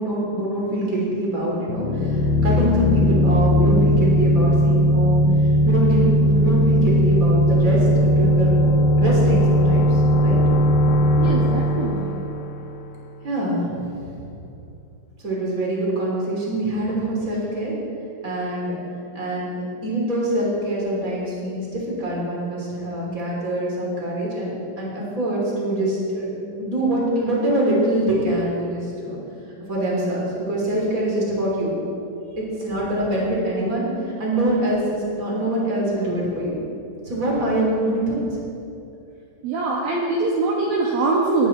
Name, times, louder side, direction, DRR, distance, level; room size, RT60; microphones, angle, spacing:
voice 1, 0.0-5.2 5.6-10.4 13.2-14.2 15.2-17.7 18.2-18.8 19.1-29.2 29.7-31.8 32.4-36.6 37.0-38.4, right 1 dB, 20° right, -4 dB, 2.6 m, -24 dB
sound 1, 1.7-13.3, equal, 80° left, 2.3 m, -18 dB
voice 2, 11.2-12.2 39.4-41.5, right 3 dB, 70° right, -3 dB, 2.2 m, -23 dB
21.0 x 9.1 x 4.3 m, 2.7 s
omnidirectional pair, 5.7 m